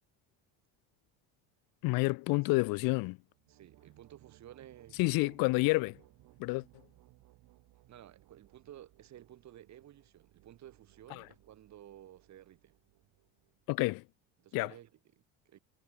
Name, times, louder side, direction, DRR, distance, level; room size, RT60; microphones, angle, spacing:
voice 1, 1.8-3.2 5.0-6.0 6.4-6.6 11.2-11.3 13.7-14.0 14.5-14.7, left 25 dB, 65° left, 0.6 m, -29 dB
sound 1, 3.3-13.9, right 17 dB, 65° right, 5.3 m, -64 dB
voice 2, 3.5-5.4 7.9-12.7 14.4-15.6, right 12 dB, 45° right, 2.2 m, -54 dB
supercardioid pair, 105°, 38 cm